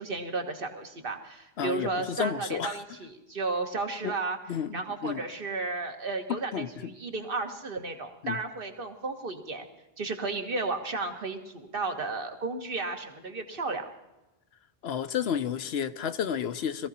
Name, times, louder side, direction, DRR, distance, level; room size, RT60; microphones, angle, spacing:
voice 1, 0.0-4.4 4.7-9.7 10.0-13.8, right 3 dB, 60° right, 1.7 m, -33 dB
voice 2, 1.6-2.8 4.0-4.1 4.5-4.8 5.0-5.2 6.3-6.9 8.2-8.4 14.8-16.9, left 8 dB, 85° left, 1.0 m, -31 dB
21.0 x 15.0 x 4.2 m
omnidirectional pair, 1.0 m